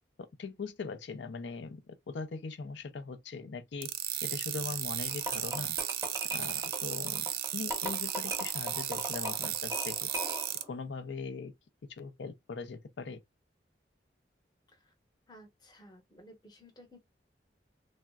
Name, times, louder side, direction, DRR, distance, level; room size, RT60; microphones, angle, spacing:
voice 1, 0.4-1.8 2.1-3.9 4.2-5.8 6.3-10.1 10.7-11.5 12.0-13.2, left 4 dB, 75° left, 0.5 m, -40 dB
sound 1, 3.8-10.6, right 12 dB, 50° right, 0.3 m, -35 dB
sound 2, 5.1-10.7, right 1 dB, 15° right, 0.7 m, -39 dB
voice 2, 15.3-17.0, equal, 20° left, 0.8 m, -55 dB
3.5 x 2.0 x 2.3 m
head